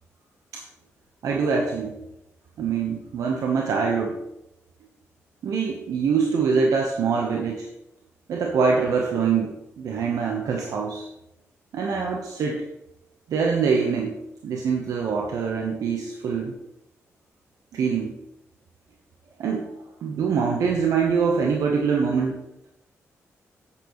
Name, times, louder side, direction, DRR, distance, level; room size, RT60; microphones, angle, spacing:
voice 1, 1.2-2.0 2.6-4.2 5.4-7.7 8.3-11.1 11.7-12.6 13.3-14.2 14.4-16.5 17.7-18.1 19.4-19.7 20.0-22.4, right 5 dB, 80° right, 0 dB, 1.1 m, -24 dB
8.9 x 8.6 x 3.2 m, 0.87 s
cardioid pair, 65°, 6 cm